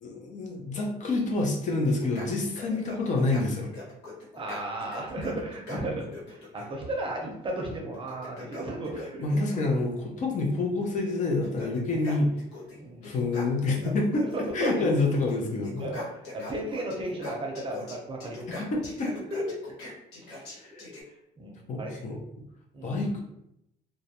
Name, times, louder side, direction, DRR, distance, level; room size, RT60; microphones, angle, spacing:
voice 1, 0.0-3.7 9.2-12.3 13.0-14.2 14.5-15.9 18.5-19.1 20.5-20.7 21.7-22.2 22.8-23.2, left 2 dB, 45° left, 0 dB, 0.6 m, -27 dB
sound 1, 1.9-6.7 7.9-9.8 10.8-10.9 11.3-12.8 13.0-15.4 15.6-21.0, left 2 dB, 90° left, 1.0 m, -41 dB
voice 2, 4.4-9.2 12.8-13.1 14.3-14.9 15.8-18.6 19.0-19.6 20.2-20.4 20.7-20.8 21.4-21.9 22.7-23.1, right 1 dB, 30° right, 0 dB, 0.6 m, -34 dB
2.3 x 2.0 x 2.8 m, 0.80 s
cardioid pair, 110°, 17 cm